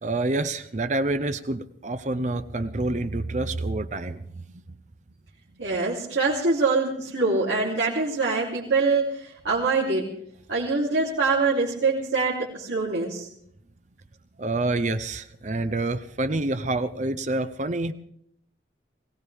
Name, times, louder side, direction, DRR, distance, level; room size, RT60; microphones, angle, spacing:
voice 1, 0.0-4.6 14.4-17.9, right 2 dB, 40° right, 11 dB, 0.6 m, -27 dB
voice 2, 5.6-10.1 10.5-13.3, right 3 dB, 85° right, -7 dB, 3.2 m, -24 dB
21.5 x 17.5 x 3.5 m, 0.70 s
head